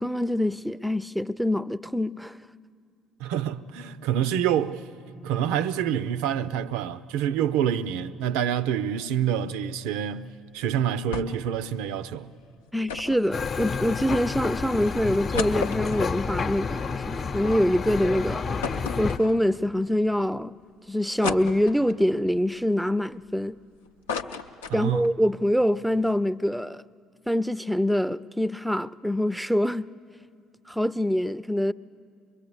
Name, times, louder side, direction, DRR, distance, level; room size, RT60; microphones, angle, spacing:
voice 1, 0.0-2.4 12.7-18.5 19.0-20.5 20.9-23.6 24.7-26.8 27.3-29.9 30.7-31.7, equal, ahead, 0.5 m, -25 dB
voice 2, 3.2-4.8 5.2-12.3 24.7-25.1, right 9 dB, 70° right, 0.5 m, -27 dB
sound 1, 11.1-11.5 11.8-11.9 12.9-14.1 14.7-14.8 15.1-17.5 17.9-18.0 18.6-19.8 20.3-20.4 21.2-22.1 22.6-23.6 23.9-25.2 25.5-25.6 25.9-26.1, left 5 dB, 85° left, 0.6 m, -34 dB
sound 2, 13.3-19.2, left 5 dB, 45° left, 0.9 m, -30 dB
23.5 x 22.5 x 8.2 m
hypercardioid pair, 55°, 0 cm